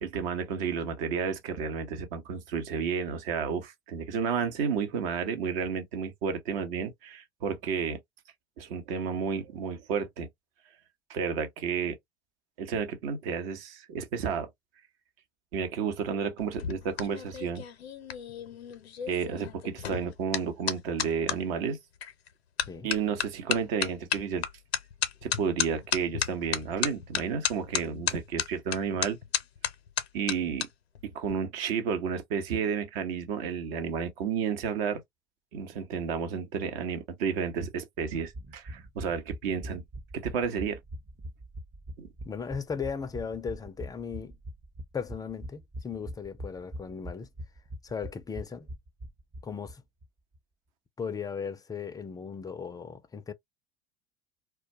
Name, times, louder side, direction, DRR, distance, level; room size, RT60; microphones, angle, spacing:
voice 1, 0.0-8.0 8.6-10.3 11.1-12.0 12.6-14.5 15.5-17.6 19.1-21.8 22.8-24.4 25.2-29.2 30.1-30.7 31.0-35.0 35.5-39.8 40.1-40.8 42.0-42.1, right 6 dB, 65° right, 0.9 m, -31 dB
sound 1, 16.4-21.4 22.0-22.3 22.6-30.7 30.9-31.3, left 9 dB, 85° left, 0.5 m, -33 dB
sound 2, 38.0-49.8 50.0-50.1 50.3-50.4, right 1 dB, 25° right, 0.6 m, -42 dB
voice 2, 42.3-44.4 44.9-47.3 47.8-48.7 49.4-49.8 51.0-53.3, left 6 dB, 15° left, 0.3 m, -37 dB
2.2 x 2.1 x 2.7 m
hypercardioid pair, 80°, 31 cm